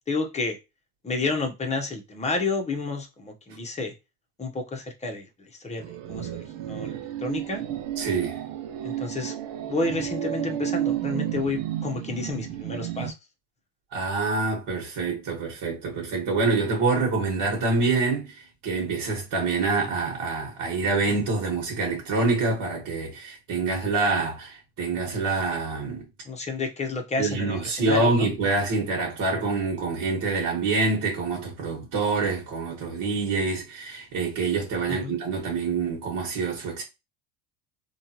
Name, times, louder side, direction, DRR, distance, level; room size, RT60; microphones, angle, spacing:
voice 1, 0.1-0.6 1.0-3.9 4.4-5.2 5.6-6.3 6.6-7.6 8.8-9.3 9.7-13.1 26.2-28.3 34.9-35.1, left 3 dB, 15° left, 0.9 m, -30 dB
sound 1, 5.8-13.1, right 11 dB, 65° right, 0.7 m, -32 dB
voice 2, 8.0-8.4 13.9-26.1 27.2-36.8, right 3 dB, 50° right, 1.6 m, -26 dB
3.5 x 2.4 x 2.9 m
supercardioid pair, 105°, 45 cm